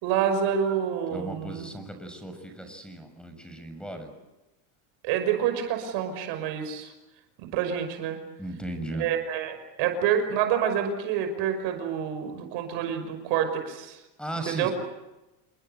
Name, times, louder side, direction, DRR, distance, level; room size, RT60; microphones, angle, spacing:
voice 1, 0.0-1.7 5.0-6.9 7.4-8.2 9.0-14.0 14.5-14.7, right 8 dB, 65° right, 7 dB, 5.8 m, -27 dB
voice 2, 1.1-4.1 8.4-9.1 14.2-14.7, right 1 dB, ahead, 7 dB, 6.6 m, -37 dB
29.5 x 20.5 x 8.3 m, 1.0 s
supercardioid pair, 100°, 47 cm